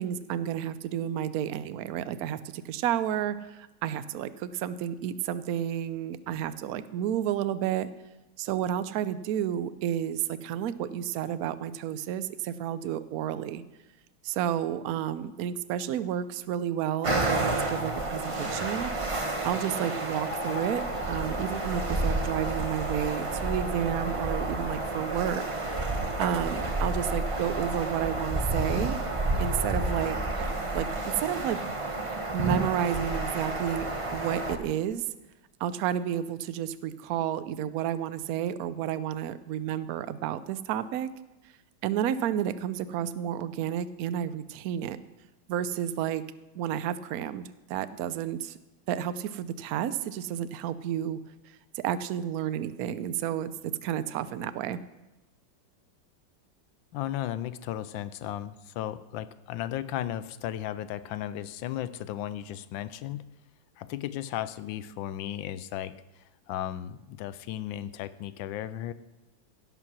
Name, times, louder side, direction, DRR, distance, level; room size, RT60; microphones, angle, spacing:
voice 1, 0.0-7.9 8.4-13.6 14.2-18.9 19.2-20.8 21.1-29.0 29.4-30.2 30.7-31.7 32.3-35.0 35.6-41.1 41.8-45.0 45.5-46.2 46.6-47.4 47.7-48.6 48.9-51.2 51.8-54.8, right 10 dB, 80° right, 14 dB, 0.8 m, -31 dB
sound 1, 17.0-34.6, right 2 dB, 25° right, 0.7 m, -30 dB
sound 2, 20.3-22.8, left 7 dB, 45° left, 0.8 m, -43 dB
voice 2, 56.9-63.2 63.8-68.9, left 12 dB, 80° left, 15 dB, 1.3 m, -35 dB
16.5 x 5.8 x 6.1 m, 1.1 s
omnidirectional pair, 2.2 m